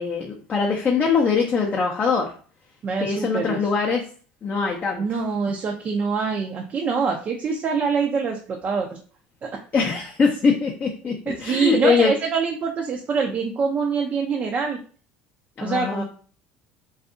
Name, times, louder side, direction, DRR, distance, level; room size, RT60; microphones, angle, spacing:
voice 1, 0.0-2.3 3.0-4.0 4.4-5.2 9.7-11.1 11.4-12.1 15.6-16.0, left 5 dB, 30° left, 0 dB, 0.5 m, -22 dB
voice 2, 2.8-3.6 5.0-9.0 9.4-9.6 11.3-14.8 15.6-16.0, right 5 dB, 35° right, 2 dB, 0.4 m, -25 dB
2.6 x 2.3 x 2.4 m, 0.42 s
supercardioid pair, 110°, 4 cm